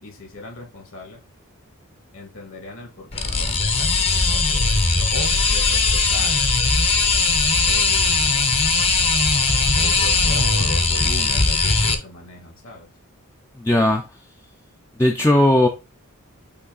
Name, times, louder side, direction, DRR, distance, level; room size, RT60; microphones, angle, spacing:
voice 1, 0.0-1.2 2.1-6.4 7.7-8.3 9.7-12.9, left 2 dB, 70° left, 2.5 m, -37 dB
sound 1, 3.1-11.9, left 3 dB, 30° left, 0.8 m, -19 dB
voice 2, 13.6-14.0 15.0-15.7, left 1 dB, 10° left, 0.5 m, -17 dB
8.5 x 2.9 x 4.0 m
head